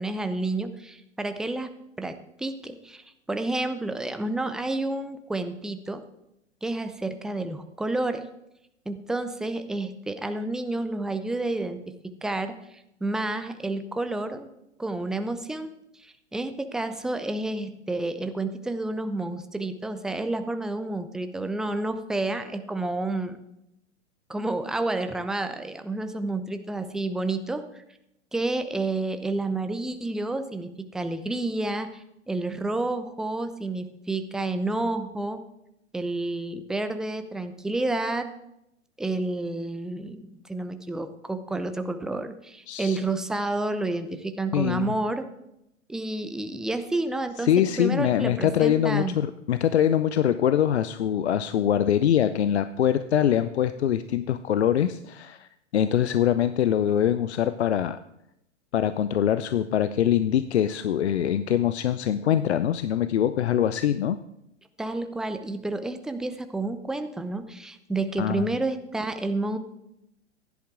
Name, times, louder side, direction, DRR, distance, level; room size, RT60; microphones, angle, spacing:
voice 1, 0.0-1.7 2.0-6.0 6.6-8.3 8.9-11.8 12.2-14.5 14.8-15.7 16.0-23.4 24.3-27.8 28.3-35.4 35.9-38.3 39.0-45.3 45.9-47.5 47.8-49.2 64.8-69.6, right 2 dB, ahead, 9 dB, 0.5 m, -30 dB
voice 2, 42.7-43.0 44.5-44.9 47.4-58.0 58.7-64.2 68.2-68.5, left 10 dB, 65° left, 13 dB, 0.7 m, -23 dB
15.5 x 10.5 x 3.7 m, 0.82 s
figure-of-eight pair, 105°, 36 cm